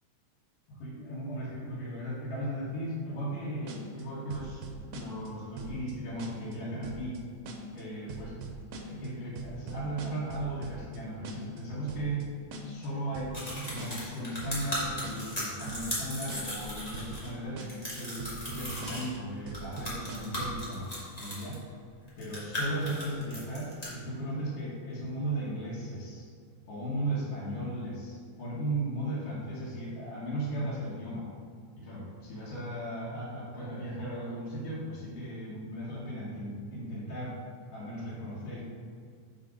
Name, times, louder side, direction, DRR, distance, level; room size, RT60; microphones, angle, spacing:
voice 1, 0.7-7.2 7.7-8.4 8.8-12.3 12.6-21.6 22.2-26.3 26.7-31.3 31.8-37.4 37.7-38.6, right 1 dB, 90° left, -9 dB, 2.8 m, -36 dB
sound 1, 3.7-4.0 4.3-5.3 5.6-5.9 6.2-6.6 6.8-7.2 7.5-7.8 8.1-9.1 9.4-11.0 11.2-11.6 11.9-12.2 12.5-12.9 13.1-13.5 13.8-14.1 14.4-15.4 15.7-16.0 16.3-16.7 16.9-17.3 17.6-17.9 18.2-19.2 19.5-20.6, right 5 dB, 75° right, 1.8 m, -42 dB
sound 2, 13.3-17.3 17.6-19.1 19.5-21.5 22.1-23.9, equal, 20° left, 1.2 m, -37 dB
6.0 x 5.7 x 5.0 m, 2.2 s
omnidirectional pair, 3.6 m